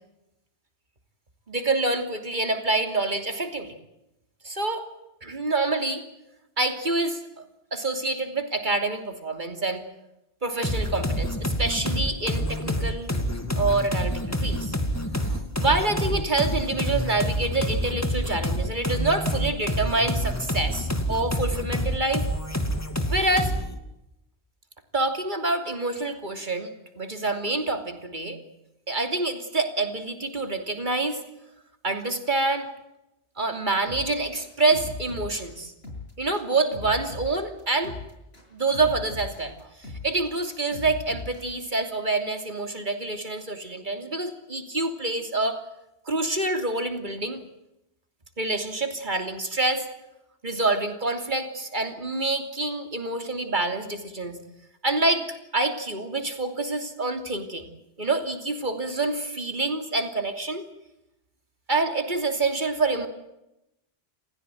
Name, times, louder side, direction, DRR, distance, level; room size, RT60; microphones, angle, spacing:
voice 1, 1.5-3.7 4.4-4.8 5.2-6.0 6.6-7.4 7.7-9.8 10.4-13.1 13.5-14.7 15.2-22.3 23.1-23.5 24.9-28.4 28.9-31.2 31.8-32.7 33.4-35.7 36.2-38.0 38.5-39.5 39.8-45.6 46.1-47.4 48.4-49.8 50.4-54.4 54.8-55.2 55.5-57.7 58.0-60.7 61.7-63.1, right 2 dB, 45° right, 7 dB, 3.1 m, -27 dB
sound 1, 10.6-23.8, equal, 15° left, 2.5 m, -27 dB
sound 2, 33.9-41.6, left 3 dB, 70° left, 7.1 m, -39 dB
29.5 x 15.5 x 9.1 m, 0.89 s
omnidirectional pair, 1.1 m